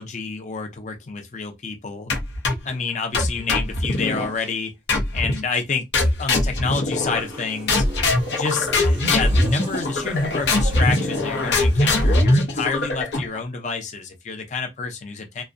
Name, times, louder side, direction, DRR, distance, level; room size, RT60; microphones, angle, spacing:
voice 1, 0.0-2.1 2.6-4.7 5.1-5.8 6.2-7.8 8.3-15.4, left 4 dB, 40° left, 0.5 m, -28 dB
sound 1, 2.1-2.7 3.1-4.3 4.9-5.4 5.9-7.4 7.7-13.4, left 2 dB, 85° left, 0.7 m, -21 dB
sound 2, 7.1-12.3, equal, 25° right, 0.5 m, -38 dB
2.6 x 2.1 x 2.5 m
head